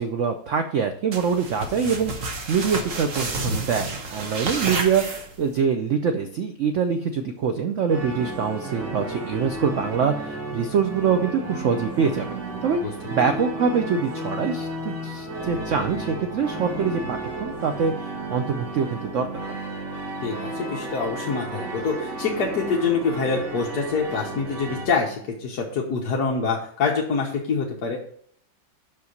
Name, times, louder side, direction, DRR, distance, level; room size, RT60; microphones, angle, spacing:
voice 1, 0.0-12.3 12.6-19.6, right 6 dB, 80° right, 7 dB, 0.6 m, -25 dB
sound 1, 1.1-5.6, right 3 dB, 50° right, 1.4 m, -30 dB
sound 2, 7.9-24.9, right 2 dB, 65° right, 2.5 m, -33 dB
voice 2, 20.2-28.0, left 5 dB, 60° left, -1 dB, 1.5 m, -25 dB
6.0 x 5.7 x 6.5 m, 0.63 s
omnidirectional pair, 2.0 m